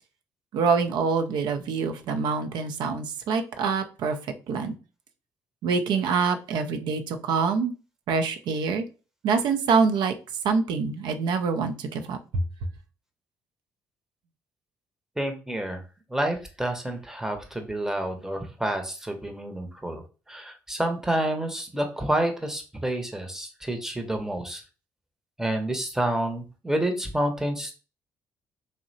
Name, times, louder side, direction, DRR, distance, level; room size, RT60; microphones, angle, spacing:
voice 1, 0.5-4.2 4.5-4.8 5.6-7.7 8.1-8.8 9.2-10.1 10.4-12.4, right 5 dB, 70° right, 7 dB, 0.4 m, -25 dB
voice 2, 15.2-15.8 16.1-20.0 20.3-24.6 25.4-27.7, right 1 dB, 5° right, 4 dB, 0.7 m, -29 dB
2.7 x 2.0 x 2.6 m, 0.33 s
hypercardioid pair, 50°, 8 cm